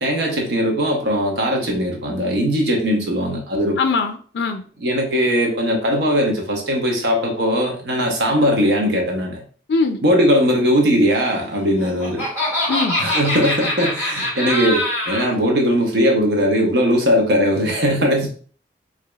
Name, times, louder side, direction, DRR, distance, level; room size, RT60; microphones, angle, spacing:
voice 1, 0.0-3.8 4.8-9.4 10.0-12.3 13.0-18.3, equal, 85° right, 1 dB, 0.9 m, -19 dB
voice 2, 3.8-4.6 9.7-10.0 12.7-13.0, left 4 dB, 80° left, 7 dB, 0.4 m, -21 dB
Laughter, 11.6-15.3, left 1 dB, 10° right, 1.8 m, -23 dB
4.9 x 2.8 x 2.3 m, 0.43 s
head